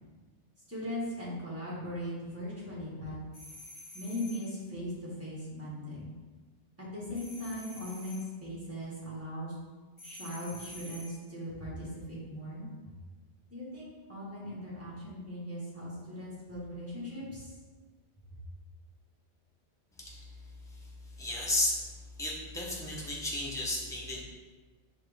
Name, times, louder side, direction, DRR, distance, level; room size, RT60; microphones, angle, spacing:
voice 1, 0.7-3.1 3.9-6.1 6.8-9.5 10.0-12.6 13.5-17.5, left 1 dB, 15° right, -7 dB, 1.3 m, -39 dB
sound 1, 3.3-4.5 7.1-8.3 10.0-11.2, left 1 dB, 30° left, 1.0 m, -48 dB
voice 2, 20.7-21.8 22.2-24.2, left 1 dB, 5° left, -4 dB, 0.6 m, -34 dB
5.8 x 2.5 x 3.4 m, 1.3 s
omnidirectional pair, 1.2 m